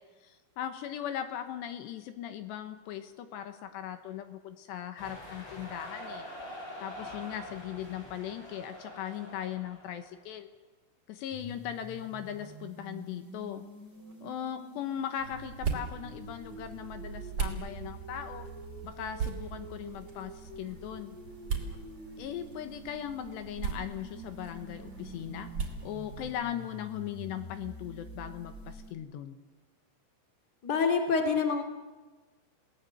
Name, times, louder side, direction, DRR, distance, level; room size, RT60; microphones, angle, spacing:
voice 1, 0.0-6.3 6.8-10.5 11.1-13.7 14.2-18.5 18.8-21.2 22.2-25.5 25.8-29.4, left 10 dB, 75° left, 8 dB, 2.9 m, -39 dB
sound 1, 5.0-10.1, left 1 dB, 55° left, 9.6 m, -45 dB
sound 2, 11.3-28.9, equal, 5° left, 3.0 m, -48 dB
sound 3, 15.2-26.3, right 6 dB, 35° right, 2.9 m, -39 dB
voice 2, 30.6-31.6, left 5 dB, 40° left, 4 dB, 1.5 m, -26 dB
29.5 x 18.0 x 7.9 m, 1.3 s
omnidirectional pair, 5.8 m